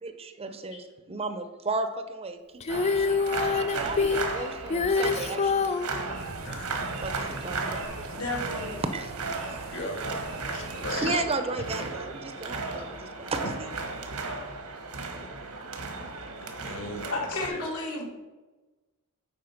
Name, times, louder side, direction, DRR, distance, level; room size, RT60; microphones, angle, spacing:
voice 1, 0.0-2.4 2.7-5.8 7.0-7.1 7.4-7.8 8.9-9.1 9.5-9.6 10.9-13.7, right 3 dB, 25° right, 9 dB, 0.6 m, -34 dB
Female singing, 2.6-5.9 7.8-7.9, left 4 dB, 30° left, 0.3 m, -26 dB
sound 1, 2.7-17.5, right 3 dB, 85° right, 1.2 m, -35 dB
sound 2, 6.1-11.2, right 3 dB, 70° right, 0.7 m, -44 dB
voice 2, 8.1-8.8 17.1-18.0, left 2 dB, 75° left, -1 dB, 2.2 m, -32 dB
voice 3, 9.7-10.2 10.5-11.6 12.7-13.1 13.4-13.5 13.9-14.0 16.4-17.7, left 1 dB, 55° left, 2 dB, 1.8 m, -38 dB
8.7 x 4.6 x 5.8 m, 1.2 s
head